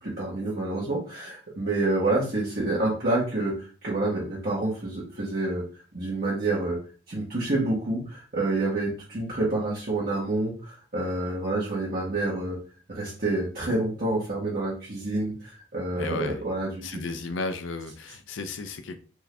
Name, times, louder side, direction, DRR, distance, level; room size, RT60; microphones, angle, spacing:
voice 1, 0.0-3.5 3.8-5.6 5.9-6.8 7.1-12.6 12.9-17.0, right 2 dB, 50° right, 1.3 m, -28 dB
voice 2, 16.0-16.4 16.8-19.0, left 3 dB, 85° left, 0.5 m, -34 dB
4.5 x 2.7 x 3.3 m
head